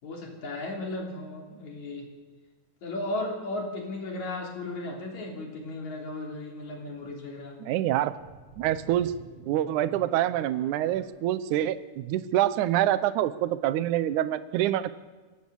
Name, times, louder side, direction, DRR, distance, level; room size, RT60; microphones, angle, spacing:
voice 1, 0.0-2.1 2.8-7.6, left 2 dB, 60° left, -1 dB, 4.7 m, -35 dB
voice 2, 7.6-8.1 8.6-9.1 9.5-14.9, right 13 dB, 75° right, 13 dB, 2.2 m, -26 dB
sound 1, 8.2-11.0, right 4 dB, 55° right, 3.9 m, -48 dB
23.0 x 16.5 x 7.1 m, 1.3 s
omnidirectional pair, 3.7 m